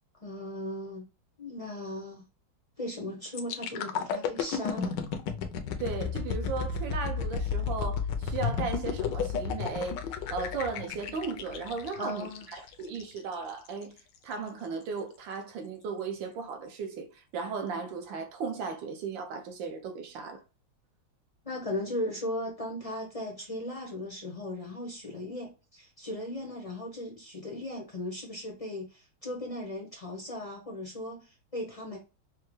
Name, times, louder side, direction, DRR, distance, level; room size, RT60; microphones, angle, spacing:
voice 1, 0.2-1.1 1.4-2.3 2.8-5.0 11.9-12.5 21.4-32.0, left 1 dB, 45° left, 0.4 m, -37 dB
sound 1, 3.4-13.2 13.7-13.8, left 6 dB, 70° left, 1.1 m, -33 dB
voice 2, 5.8-10.0 10.3-14.0 14.2-20.4, right 4 dB, 75° right, 1.4 m, -36 dB
5.5 x 2.1 x 3.1 m
omnidirectional pair, 2.2 m